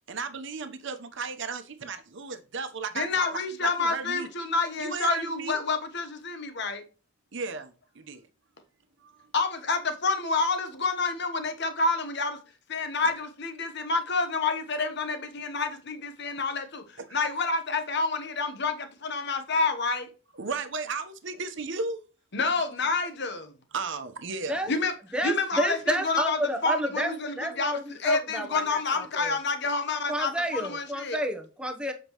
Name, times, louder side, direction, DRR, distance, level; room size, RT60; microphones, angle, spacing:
voice 1, 0.1-4.3 4.8-5.6 7.3-8.3 9.0-9.3 17.1-17.2 20.3-22.0 23.7-24.8, right 4 dB, 60° right, 1.0 m, -35 dB
voice 2, 2.9-6.8 9.3-12.4 12.7-20.1 22.3-23.5 24.7-24.9 25.2-31.2, left 3 dB, 55° left, 1.1 m, -28 dB
voice 3, 25.1-27.1 27.4-29.4 30.1-31.9, equal, 5° right, 0.9 m, -30 dB
7.3 x 5.1 x 3.0 m
head